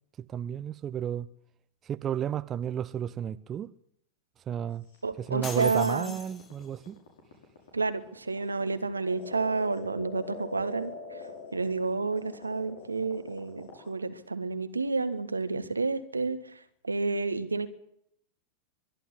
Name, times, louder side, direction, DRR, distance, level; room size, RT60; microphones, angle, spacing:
voice 1, 0.2-1.3 1.8-3.7 4.5-4.8 5.2-7.0, right 9 dB, 25° right, 0.7 m, -32 dB
sound 1, 4.9-13.9, left 4 dB, 60° left, 6.3 m, -43 dB
voice 2, 5.0-6.1 7.7-11.2 11.5-17.7, right 3 dB, 80° right, 1.5 m, -30 dB
sound 2, 5.4-6.9, left 6 dB, 25° left, 1.8 m, -43 dB
23.0 x 11.5 x 9.8 m
figure-of-eight pair, 90°, 0 cm